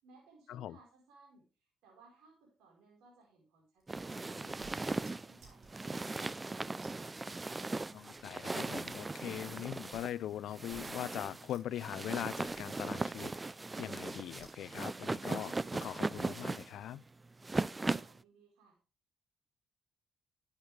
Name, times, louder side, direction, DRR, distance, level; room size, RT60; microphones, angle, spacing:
voice 1, 0.0-6.9 18.0-18.8, right 3 dB, 90° right, 4.5 m, -63 dB
sound 1, 3.8-11.8 12.1-14.9, right 4 dB, 70° right, 7.2 m, -61 dB
sound 2, 3.9-18.2, right 3 dB, 20° right, 0.4 m, -38 dB
voice 2, 7.9-13.3 13.8-17.0, left 12 dB, 80° left, 0.5 m, -41 dB
12.0 x 9.6 x 3.4 m
cardioid pair, 90°, 0 cm